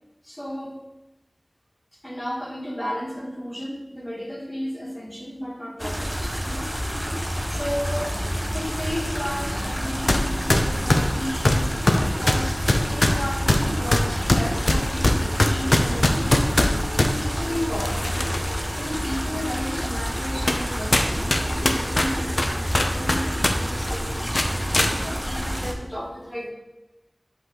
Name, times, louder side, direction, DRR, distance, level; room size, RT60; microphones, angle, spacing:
voice 1, 0.2-0.8 2.0-6.7 7.5-8.2 8.5-12.6 12.9-18.0 18.7-26.5, equal, 15° left, -1 dB, 1.5 m, -33 dB
sound 1, 5.8-25.7, equal, 5° right, 0.8 m, -28 dB
sound 2, 10.1-10.2 10.5-17.1 17.8-18.5 18.9-19.0 19.8-19.9 20.5-20.6 20.9-23.5 23.8-23.9 24.3-24.9, left 1 dB, 70° left, 0.6 m, -20 dB
6.4 x 5.4 x 3.8 m, 1.0 s
wide cardioid pair, 50°, 0 cm